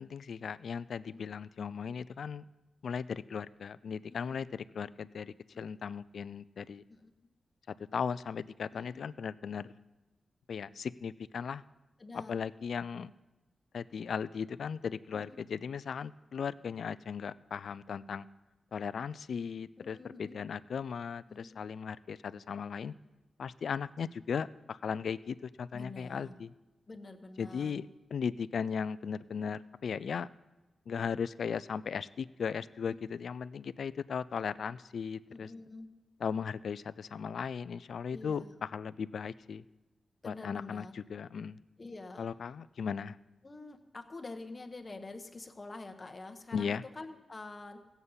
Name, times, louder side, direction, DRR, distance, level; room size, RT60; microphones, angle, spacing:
voice 1, 0.0-2.4 2.8-6.8 7.7-9.7 10.5-11.6 12.1-13.1 13.7-18.3 18.7-22.9 23.4-26.5 27.4-27.9 28.1-30.3 30.9-35.5 36.2-39.6 40.2-41.6 42.2-43.2 46.5-46.8, left 6 dB, 65° left, 17 dB, 0.3 m, -37 dB
voice 2, 4.1-4.6 5.5-5.6 6.9-7.1 8.7-9.0 12.0-12.4 15.1-15.5 19.8-20.4 21.3-21.6 25.7-26.3 26.9-27.7 32.9-33.0 35.3-35.9 38.1-38.5 40.2-41.0 41.8-42.3 43.4-47.8, left 3 dB, 25° left, 6 dB, 0.9 m, -47 dB
16.0 x 8.1 x 5.6 m, 1.1 s
wide cardioid pair, 150°, 0 cm